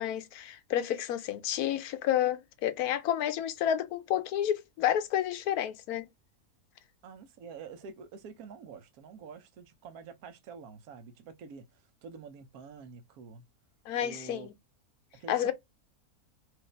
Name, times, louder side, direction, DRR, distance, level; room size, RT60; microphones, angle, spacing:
voice 1, 0.0-6.1 13.9-14.5 15.3-15.5, left 11 dB, 85° left, 1.1 m, -30 dB
voice 2, 7.0-13.4 14.0-14.5 15.1-15.5, right 5 dB, 80° right, 1.2 m, -47 dB
4.7 x 2.6 x 3.2 m
omnidirectional pair, 1.6 m